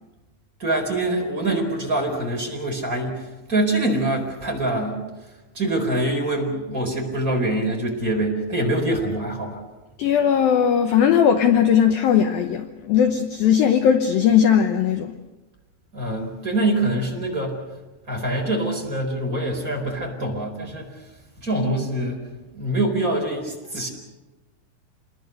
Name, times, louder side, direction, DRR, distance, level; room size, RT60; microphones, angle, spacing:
voice 1, 0.6-3.2 3.5-5.0 5.5-9.6 15.9-17.6 18.1-20.9 21.4-22.2 22.5-23.9, right 1 dB, 20° right, 4.4 m, -24 dB
voice 2, 10.0-15.1, left 8 dB, 75° left, 2.2 m, -18 dB
28.0 x 22.0 x 6.7 m
omnidirectional pair, 5.4 m